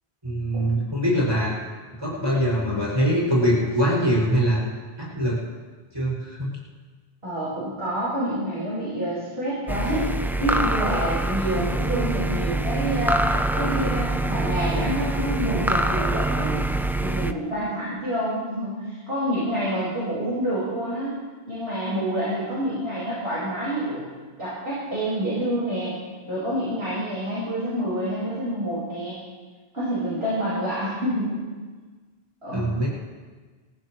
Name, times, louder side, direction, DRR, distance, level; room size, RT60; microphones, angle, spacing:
voice 1, 0.2-1.5 2.0-4.6 5.0-5.4 5.9-6.5 32.5-32.9, equal, 25° right, -5 dB, 6.6 m, -23 dB
voice 2, 7.2-10.1 10.4-16.5 17.0-21.2 21.5-24.1 24.4-25.9 26.3-29.2 29.7-31.4 32.4-32.6, equal, 75° right, -10 dB, 5.8 m, -27 dB
sound 1, 9.7-17.3, right 2 dB, 5° right, 0.4 m, -25 dB
27.0 x 15.0 x 3.2 m, 1.4 s
omnidirectional pair, 1.1 m